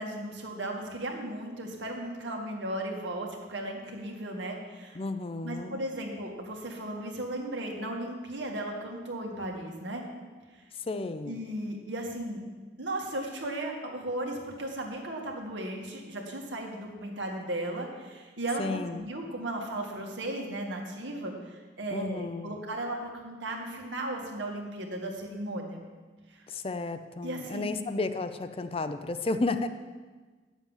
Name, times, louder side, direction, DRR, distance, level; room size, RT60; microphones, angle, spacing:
voice 1, 0.0-5.0 5.4-10.0 10.5-10.6 11.3-12.4 12.8-25.8 26.3-26.5 27.2-27.8, right 1 dB, 80° right, 1 dB, 1.9 m, -36 dB
voice 2, 4.9-5.8 10.8-11.4 18.6-19.1 21.9-22.6 26.5-29.7, left 3 dB, 30° left, 10 dB, 0.5 m, -33 dB
9.2 x 7.2 x 7.3 m, 1.4 s
head